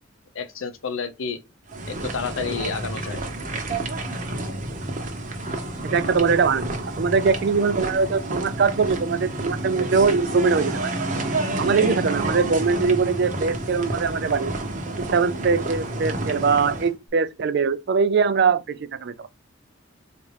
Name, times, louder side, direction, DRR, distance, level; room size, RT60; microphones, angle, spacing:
voice 1, 0.3-1.4 1.9-3.2, left 5 dB, 75° left, 0.6 m, -30 dB
sound 1, 1.7-16.9, right 2 dB, 40° right, 0.7 m, -29 dB
voice 2, 5.8-11.0 11.6-14.5 15.0-19.3, right 5 dB, 55° right, 0.4 m, -22 dB
4.1 x 2.5 x 3.2 m
head